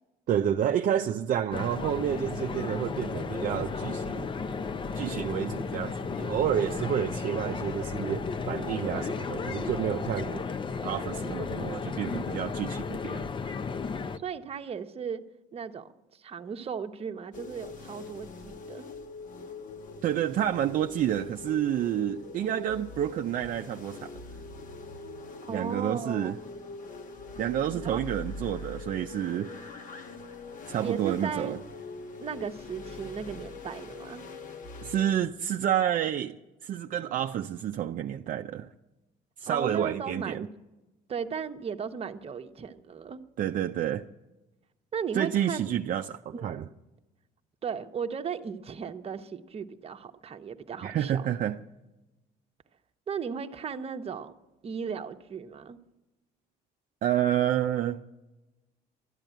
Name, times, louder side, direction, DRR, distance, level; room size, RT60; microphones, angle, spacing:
voice 1, 0.3-4.3 5.0-10.4 10.8-13.2 20.0-24.1 25.5-26.4 27.4-29.5 30.7-31.6 34.8-36.4 36.6-38.7 39.4-40.5 43.4-44.0 45.1-46.6 50.8-51.6 57.0-58.0, right 10 dB, 55° right, 0.5 m, -29 dB
sound 1, 1.5-14.2, left 5 dB, 30° left, 0.6 m, -34 dB
voice 2, 14.1-15.2 15.5-18.8 25.4-26.4 27.8-28.0 30.8-31.5 32.2-34.2 39.4-40.5 41.1-43.2 44.9-45.7 46.3-46.6 47.6-51.3 53.1-54.3 54.6-55.8, right 6 dB, 35° right, 0.9 m, -36 dB
sound 2, 17.3-35.1, left 3 dB, 50° left, 1.2 m, -43 dB
12.5 x 10.5 x 9.1 m
cardioid pair, 110°, 17 cm